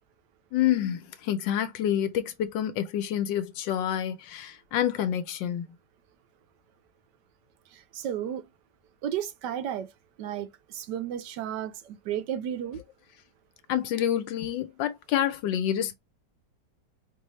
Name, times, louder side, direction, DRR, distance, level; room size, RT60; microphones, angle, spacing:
voice 1, 0.5-5.6 13.7-15.9, left 10 dB, 75° left, 1.3 m, -28 dB
voice 2, 7.7-8.5 9.0-9.9 10.2-12.8, right 10 dB, 70° right, 1.2 m, -33 dB
4.6 x 2.6 x 3.1 m
omnidirectional pair, 2.0 m